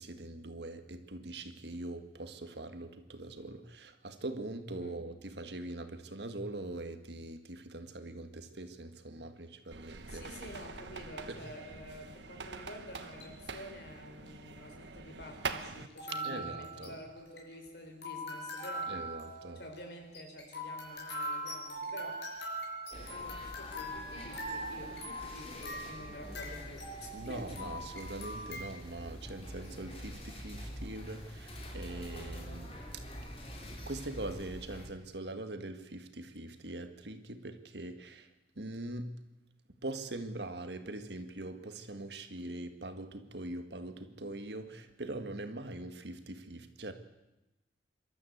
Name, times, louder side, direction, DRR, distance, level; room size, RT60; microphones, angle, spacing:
voice 1, 0.0-10.2 11.3-11.4 16.1-16.9 18.9-19.6 27.1-33.0 33.8-38.3 38.5-39.2 39.8-46.9, right 2 dB, 70° right, 8 dB, 1.7 m, -42 dB
voice 2, 4.7-5.0 10.1-18.9 19.5-22.2 23.0-27.8, left 1 dB, 65° left, 4 dB, 4.5 m, -49 dB
sound 1, 9.7-15.9, right 4 dB, 85° right, 1.2 m, -44 dB
sound 2, 13.2-13.4 14.3-14.4 15.9-28.7, equal, 85° left, 5.6 m, -42 dB
sound 3, 22.9-34.9, equal, 35° left, 3.8 m, -46 dB
25.5 x 13.0 x 8.2 m, 0.98 s
head